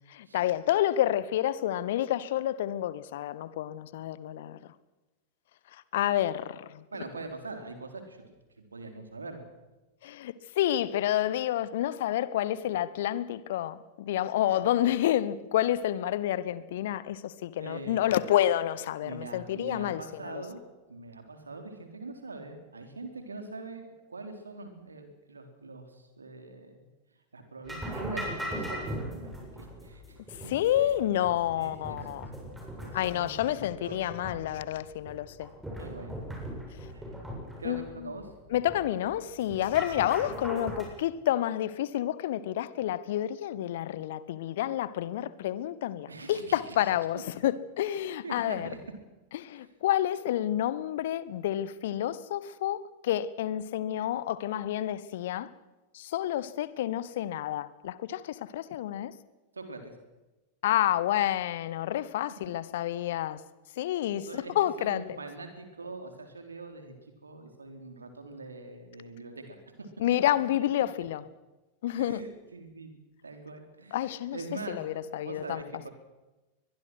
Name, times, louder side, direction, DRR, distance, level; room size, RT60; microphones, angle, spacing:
voice 1, 0.1-4.6 5.7-6.8 10.0-20.4 30.5-32.3 32.9-35.5 37.6-38.1 38.5-48.7 49.3-55.5 55.9-59.1 60.6-63.4 63.8-65.2 70.0-71.2 71.8-72.2 73.9-74.4 74.7-75.6, left 12 dB, 55° left, 1.1 m, -29 dB
voice 2, 6.9-8.2 8.6-9.4 17.6-18.4 19.0-20.6 20.9-26.9 27.3-30.9 31.5-32.2 32.8-34.0 35.8-36.2 36.9-37.1 37.6-38.3 40.3-40.4 46.1-47.2 48.2-48.8 49.6-49.7 59.5-59.9 64.3-64.5 64.8-66.9 67.2-69.9 72.0-72.9 73.2-74.0 74.3-74.8 75.2-75.9, right 3 dB, 75° right, 3.8 m, -43 dB
sound 1, 27.6-40.8, equal, 5° right, 7.6 m, -40 dB
23.0 x 21.5 x 6.3 m
figure-of-eight pair, 90°, 0 cm